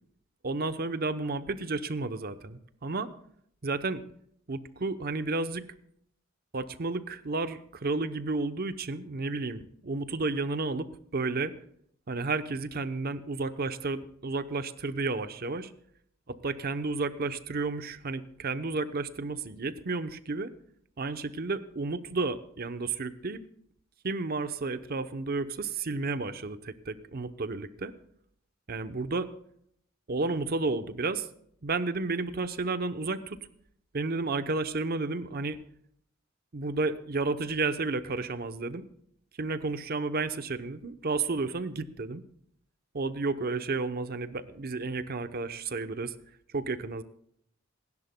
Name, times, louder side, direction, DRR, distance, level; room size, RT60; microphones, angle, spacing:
voice 1, 0.4-3.1 3.6-4.0 4.5-5.7 6.5-11.5 12.1-15.7 16.3-20.5 21.0-23.4 24.0-27.9 28.7-29.3 30.1-31.3 31.6-33.4 33.9-35.6 36.5-38.8 39.4-42.2 42.9-46.1 46.5-47.0, right 3 dB, 50° right, 11 dB, 0.8 m, -32 dB
28.0 x 11.0 x 2.2 m, 0.69 s
head